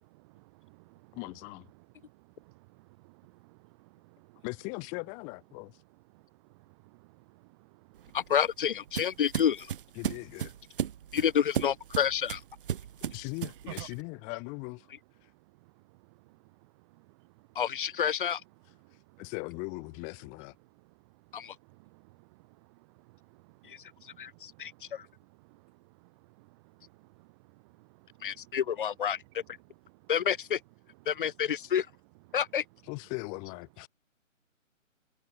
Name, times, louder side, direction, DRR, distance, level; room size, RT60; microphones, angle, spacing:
voice 1, 0.0-5.1 5.4-8.4 8.9-9.3 10.0-11.4 11.9-12.0 12.4-14.3 14.8-33.1 33.8-33.9, right 25 dB, 20° right, 3.6 m, -59 dB
voice 2, 1.1-1.7 4.4-5.7 10.0-10.5 13.1-14.9 19.2-20.5 32.9-33.9, left 35 dB, 20° left, 5.9 m, -39 dB
sound 1, 8.0-14.0, right 9 dB, 40° right, 3.1 m, -36 dB
voice 3, 8.1-9.7 11.1-12.4 17.6-18.4 21.3-21.6 23.6-23.8 24.2-25.1 28.2-29.4 30.1-30.6 31.1-31.9 32.3-32.6, left 8 dB, 40° left, 1.6 m, -29 dB
hypercardioid pair, 155°, 40 cm